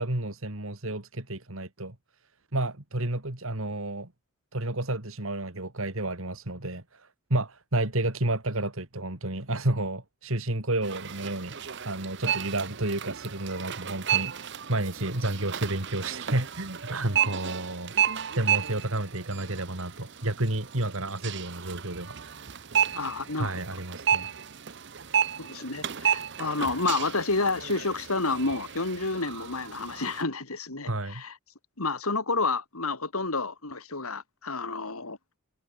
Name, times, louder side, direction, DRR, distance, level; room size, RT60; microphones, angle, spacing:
voice 1, 0.0-1.9 2.5-4.1 4.5-17.9 18.3-22.6 23.4-24.3 30.9-31.2, right 2 dB, 70° right, 2.8 m, -31 dB
sound 1, 10.8-30.2, right 9 dB, 50° right, 0.9 m, -32 dB
voice 2, 22.9-23.5 25.4-31.3 31.8-35.2, left 3 dB, 80° left, 3.3 m, -30 dB
head